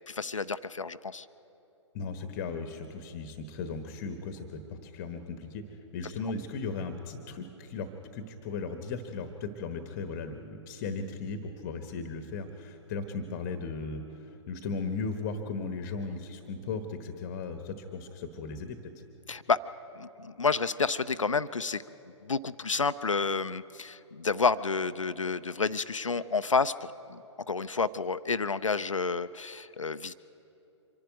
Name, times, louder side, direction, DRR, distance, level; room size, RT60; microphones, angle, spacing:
voice 1, 0.1-1.3 19.3-19.7 20.0-21.8 22.2-27.2 27.5-30.1, left 4 dB, 85° left, 14 dB, 0.5 m, -30 dB
voice 2, 1.9-18.8, left 4 dB, 30° left, 8 dB, 1.1 m, -37 dB
25.0 x 11.5 x 9.1 m, 3.0 s
figure-of-eight pair, 120°, 16 cm